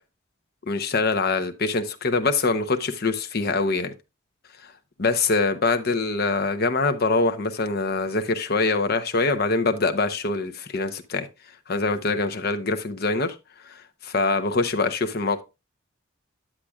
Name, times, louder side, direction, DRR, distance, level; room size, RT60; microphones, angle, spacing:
voice 1, 0.7-3.9 4.6-4.7 5.0-11.3 11.7-13.4 13.6-15.4, left 3 dB, 50° left, 0.8 m, -24 dB
9.9 x 7.5 x 2.4 m
head